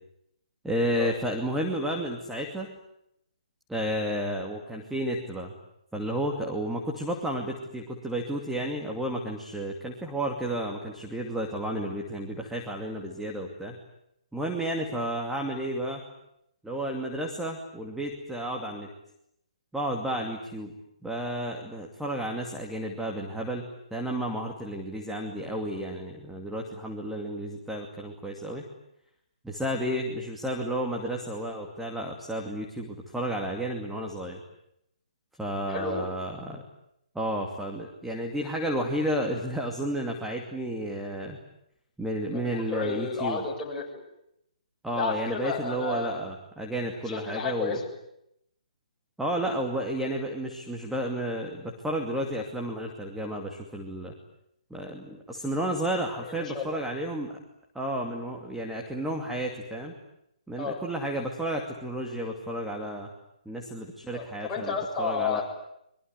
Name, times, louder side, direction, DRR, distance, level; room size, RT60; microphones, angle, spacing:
voice 1, 0.6-2.7 3.7-5.5 5.9-13.8 14.3-16.0 16.6-18.9 19.7-20.7 21.0-28.6 29.4-34.4 35.4-36.6 37.1-41.4 42.0-43.4 44.8-47.8 49.2-54.1 54.7-57.4 57.7-59.9 60.5-63.1 63.5-65.4, right 1 dB, 5° right, 0 dB, 2.6 m, -32 dB
voice 2, 35.7-36.1 42.3-44.0 44.9-46.2 46.9-47.8 56.2-56.8 60.6-60.8 64.1-65.4, left 5 dB, 15° left, -2 dB, 7.2 m, -32 dB
25.5 x 23.0 x 9.7 m, 0.78 s
figure-of-eight pair, 140°, 4 cm